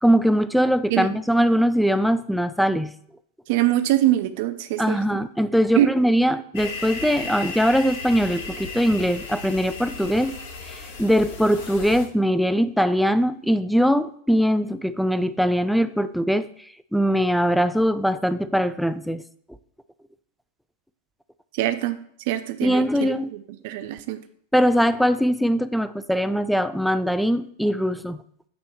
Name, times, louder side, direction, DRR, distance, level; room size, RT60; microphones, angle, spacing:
voice 1, 0.0-2.9 4.8-10.3 10.6-19.2 22.6-23.3 24.5-28.2, equal, ahead, 13 dB, 0.3 m, -21 dB
voice 2, 3.5-5.0 5.8-5.9 21.5-22.0 22.3-24.2, right 14 dB, 50° right, 10 dB, 0.5 m, -23 dB
sound 1, 6.5-12.1, left 4 dB, 55° left, 1.0 m, -35 dB
8.5 x 3.1 x 4.5 m, 0.65 s
figure-of-eight pair, 90°, 0 cm